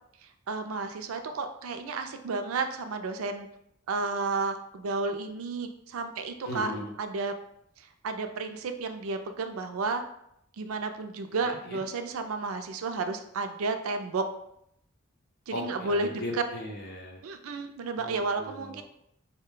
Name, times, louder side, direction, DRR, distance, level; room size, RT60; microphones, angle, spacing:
voice 1, 0.2-3.5 3.9-6.7 7.0-7.3 7.8-10.0 10.6-14.3 15.5-16.2 17.2-18.8, right 3 dB, 90° right, 7 dB, 0.4 m, -32 dB
voice 2, 6.4-6.9 11.4-11.8 15.5-17.2 18.0-18.8, equal, 50° left, -2 dB, 0.9 m, -38 dB
4.0 x 2.2 x 3.6 m, 0.76 s
head